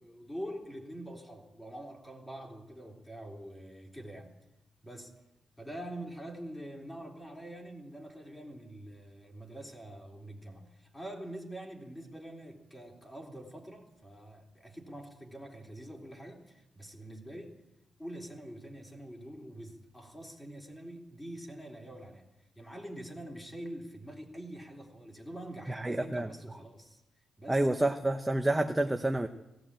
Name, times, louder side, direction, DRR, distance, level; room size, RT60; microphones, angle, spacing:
voice 1, 0.0-4.3 4.8-5.1 5.6-17.6 18.0-22.3 22.6-27.0 27.4-27.7, right 1 dB, 10° left, 3.5 m, -45 dB
voice 2, 25.7-26.3 27.5-29.3, right 1 dB, 10° right, 0.8 m, -28 dB
18.5 x 17.0 x 8.8 m
wide cardioid pair, 170°, 0 cm